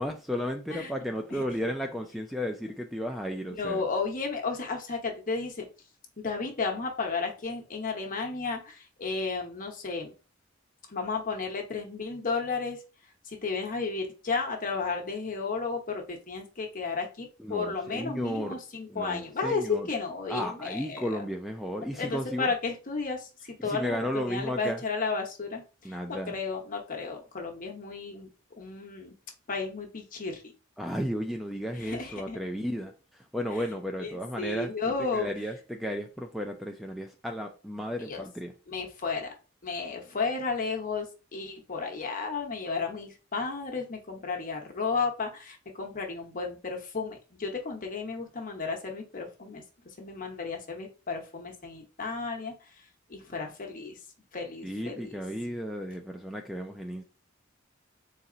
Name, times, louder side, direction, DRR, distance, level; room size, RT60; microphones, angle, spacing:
voice 1, 0.0-3.8 17.4-18.6 18.9-19.9 20.3-22.5 23.6-24.8 25.8-26.3 30.8-32.9 33.3-34.7 35.1-38.5 54.6-57.0, equal, ahead, 0.3 m, -34 dB
voice 2, 3.6-5.7 6.2-10.1 10.9-12.8 13.2-21.2 21.8-28.3 28.6-29.1 29.5-30.5 31.7-32.4 33.5-33.6 34.0-35.3 38.0-38.2 38.7-39.3 39.6-54.0 54.3-55.2, left 4 dB, 45° left, 1.0 m, -33 dB
4.1 x 2.4 x 3.8 m
head